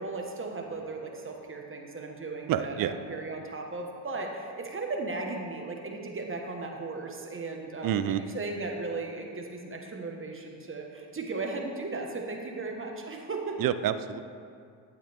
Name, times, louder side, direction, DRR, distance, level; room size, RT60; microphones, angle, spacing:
voice 1, 0.0-13.6, right 3 dB, 25° right, 1 dB, 1.5 m, -36 dB
voice 2, 2.5-2.9 7.8-8.2 13.6-14.2, right 10 dB, 45° right, 12 dB, 0.6 m, -28 dB
11.0 x 8.6 x 3.6 m, 2.3 s
supercardioid pair, 85°, 49 cm